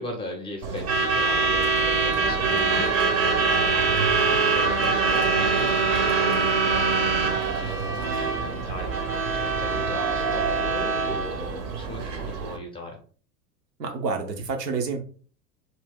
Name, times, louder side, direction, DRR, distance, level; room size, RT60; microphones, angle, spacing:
voice 1, 0.0-13.0, left 1 dB, 10° left, 1 dB, 0.6 m, -38 dB
Truck / Alarm, 0.6-12.6, right 4 dB, 40° right, 0.7 m, -24 dB
voice 2, 2.5-2.9 13.8-15.0, right 4 dB, 75° right, 4 dB, 0.8 m, -29 dB
2.7 x 2.2 x 3.5 m, 0.43 s
figure-of-eight pair, 85°, 50 cm